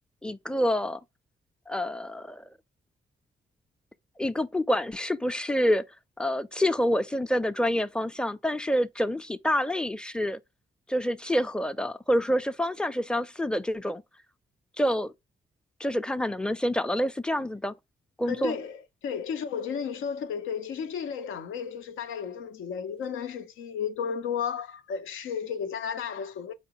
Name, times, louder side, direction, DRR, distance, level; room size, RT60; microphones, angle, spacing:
voice 1, 0.2-1.0 1.7-2.4 4.2-5.8 6.2-10.4 10.9-14.0 14.8-15.1 15.8-17.7 18.2-18.6, equal, 5° left, 0.5 m, -27 dB
voice 2, 18.3-26.5, left 7 dB, 75° left, 0.6 m, -33 dB
4.0 x 3.5 x 2.9 m
supercardioid pair, 45°, 21 cm